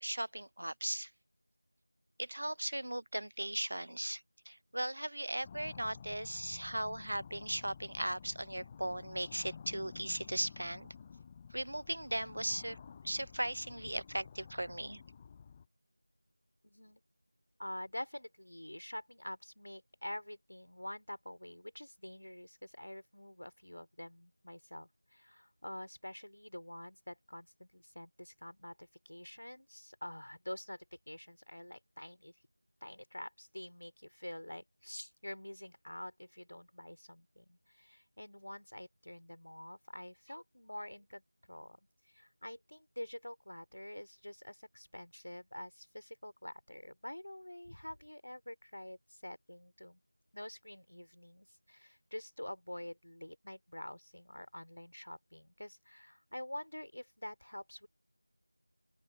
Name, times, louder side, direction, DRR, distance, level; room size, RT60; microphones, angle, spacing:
voice 1, 0.0-1.1 2.2-10.9 11.5-12.8 13.0-15.0, right 1 dB, 55° right, 0.6 m, -38 dB
sound 1, 5.4-15.7, left 6 dB, 10° left, 0.4 m, -52 dB
voice 2, 16.6-17.0 17.6-32.3 32.8-41.2 41.5-41.8 42.1-50.0 50.3-57.9, left 1 dB, 70° left, 3.4 m, -47 dB
open air
figure-of-eight pair, 175°, 0 cm